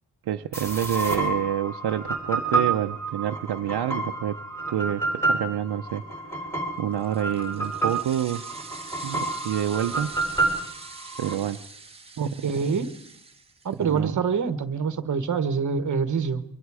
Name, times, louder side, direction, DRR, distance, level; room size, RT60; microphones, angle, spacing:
voice 1, 0.3-4.4 4.7-6.0 6.3-6.5 6.8-8.4 9.0-10.1 11.2-11.6 12.2-12.8 13.9-14.2, right 10 dB, 70° right, 5 dB, 0.8 m, -28 dB
sound 1, 0.5-11.3, right 3 dB, 5° left, 4.2 m, -29 dB
sound 2, 6.9-13.9, right 3 dB, 15° right, 1.4 m, -44 dB
voice 2, 12.2-12.9 13.6-16.4, right 5 dB, 45° right, 11 dB, 1.3 m, -26 dB
26.0 x 23.5 x 4.9 m, 0.73 s
wide cardioid pair, 180°, 40 cm